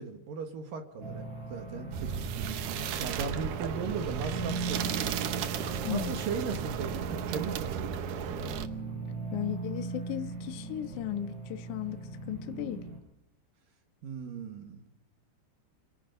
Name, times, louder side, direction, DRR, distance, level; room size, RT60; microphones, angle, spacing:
voice 1, 0.0-4.9 5.9-7.9 14.0-14.8, right 5 dB, 60° right, 6 dB, 2.9 m, -37 dB
sound 1, 1.0-13.0, right 3 dB, 40° right, 6.1 m, -39 dB
sound 2, 1.9-8.7, right 8 dB, 85° right, 1.8 m, -35 dB
voice 2, 5.8-6.2 9.3-12.8, left 11 dB, 70° left, 8 dB, 1.9 m, -36 dB
28.5 x 17.5 x 5.3 m, 0.82 s
omnidirectional pair, 5.3 m